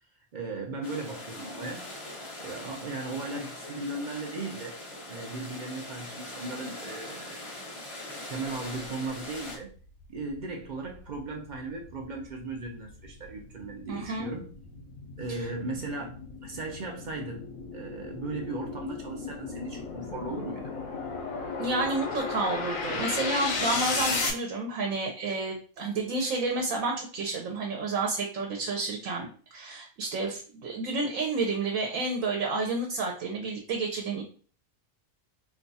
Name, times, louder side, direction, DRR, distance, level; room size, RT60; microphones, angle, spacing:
voice 1, 0.3-1.9 2.2-4.8 5.1-7.5 8.3-9.7 10.1-14.5 15.2-17.5 17.7-20.7, right 3 dB, 50° right, 0.5 m, -37 dB
sound 1, 0.8-9.6, left 1 dB, 30° left, 0.7 m, -42 dB
sound 2, 9.6-9.7 10.2-24.3, left 4 dB, 75° left, 1.1 m, -35 dB
voice 2, 13.9-14.3 15.3-15.4 21.6-34.2, right 3 dB, 75° right, 1.1 m, -30 dB
2.7 x 2.3 x 4.0 m
omnidirectional pair, 1.4 m